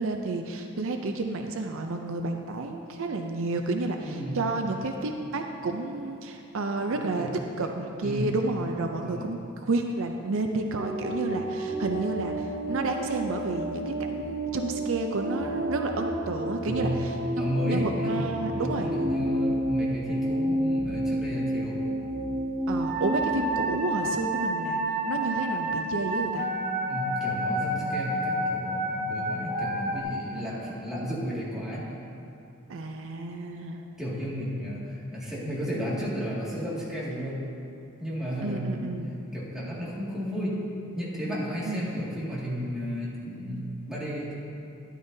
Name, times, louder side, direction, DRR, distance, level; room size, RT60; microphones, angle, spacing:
voice 1, 0.0-7.3 7.6-17.1 17.6-18.9 22.7-24.8 25.1-26.5 32.7-33.9 38.4-39.1 41.7-42.0, right 3 dB, 65° right, 4 dB, 0.5 m, -31 dB
voice 2, 4.0-4.4 7.2-7.3 7.6-7.7 8.0-8.4 9.0-9.4 16.6-17.0 17.4-21.8 26.9-31.8 34.0-37.4 38.0-39.0 39.3-40.6 41.0-44.3, equal, 5° right, -8 dB, 2.1 m, -33 dB
sound 1, 10.8-30.0, right 1 dB, 40° right, 1.5 m, -30 dB
13.0 x 10.5 x 2.7 m, 2.6 s
head